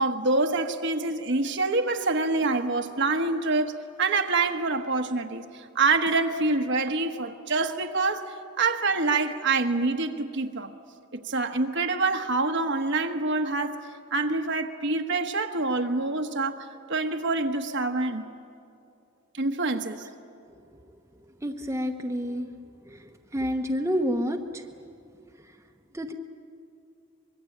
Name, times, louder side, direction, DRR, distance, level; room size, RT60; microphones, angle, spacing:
voice 1, 0.0-10.7 11.1-13.8 14.1-18.2 19.3-20.1, right 3 dB, 60° right, 5 dB, 1.3 m, -26 dB
voice 2, 21.4-22.5 22.9-24.6 25.9-26.1, equal, 15° right, 4 dB, 1.0 m, -29 dB
24.5 x 22.5 x 8.6 m, 2.5 s
head